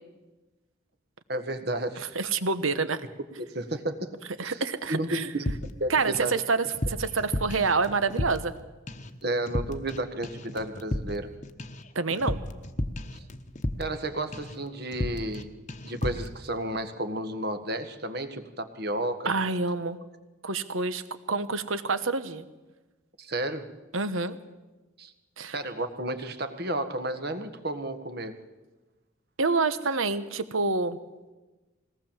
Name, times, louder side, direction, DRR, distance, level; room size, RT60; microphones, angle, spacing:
voice 1, 1.3-2.1 3.4-4.1 4.4-4.6 4.9-5.4 5.8-6.3 9.2-11.3 13.1-13.3 13.8-15.5 15.8-19.3 23.2-23.7 25.0-25.1 25.5-28.4, right 1 dB, 50° right, 9 dB, 1.6 m, -32 dB
voice 2, 2.1-3.0 4.4-5.3 5.9-8.5 11.9-12.4 19.2-20.0 20.4-21.0 21.3-22.4 23.9-24.4 25.4-25.5 29.4-31.0, right 4 dB, 80° right, 12 dB, 1.3 m, -27 dB
sound 1, 5.5-6.4 6.6-8.6 8.9-9.2 9.5-10.0 10.2-14.0 14.3-14.6 14.9-15.4 15.7-16.3, left 1 dB, 35° left, 1.0 m, -33 dB
21.5 x 18.0 x 7.4 m, 1.2 s
head